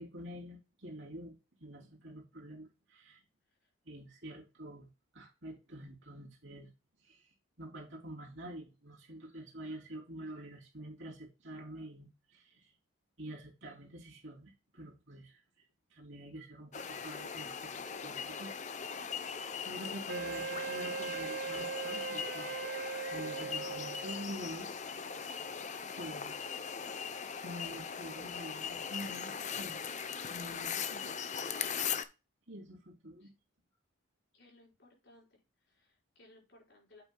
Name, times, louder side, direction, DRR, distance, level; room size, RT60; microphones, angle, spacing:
voice 1, 0.0-3.2 3.8-6.7 7.0-12.7 13.2-15.6 15.9-19.1 19.6-22.6 23.1-24.7 26.0-26.4 27.4-29.8 30.3-31.7 32.5-33.3, equal, 65° right, 3.1 m, -47 dB
sound 1, 16.7-32.0, left 6 dB, 35° left, 0.7 m, -40 dB
Wind instrument woodwind instrument, 20.1-24.3, right 6 dB, 45° right, 0.4 m, -40 dB
voice 2, 34.3-37.0, left 2 dB, 55° left, 5.0 m, -62 dB
8.3 x 7.9 x 2.3 m
head